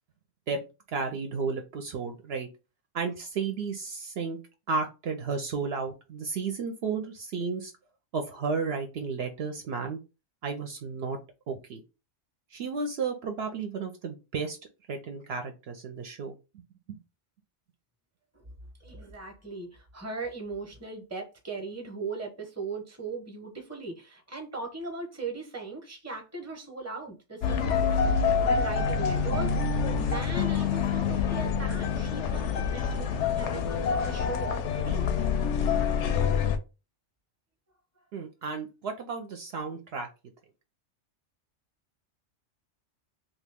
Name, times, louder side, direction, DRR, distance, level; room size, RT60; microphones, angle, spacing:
voice 1, 0.9-2.5 2.9-4.4 4.7-7.7 8.1-10.0 10.4-11.2 11.5-11.8 12.5-14.6 14.9-16.6 16.9-17.0 38.1-40.1, right 5 dB, 65° right, 0.7 m, -33 dB
voice 2, 18.8-35.1, right 3 dB, 15° right, 0.8 m, -38 dB
sound 1, 27.4-36.6, left 6 dB, 80° left, 0.9 m, -26 dB
2.9 x 2.5 x 3.4 m
omnidirectional pair, 1.2 m